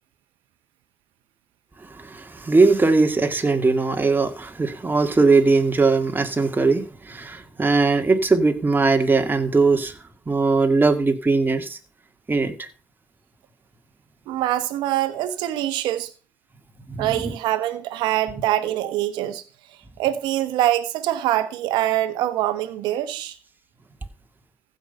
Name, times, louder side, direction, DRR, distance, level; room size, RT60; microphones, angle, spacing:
voice 1, 2.0-9.9 10.3-11.8 12.3-12.7 16.9-17.3, right 3 dB, 25° right, 2.1 m, -20 dB
voice 2, 14.3-16.1 17.0-19.4 20.0-23.4, right 13 dB, 80° right, 1.1 m, -24 dB
15.0 x 5.7 x 5.5 m
hypercardioid pair, 55°, 8 cm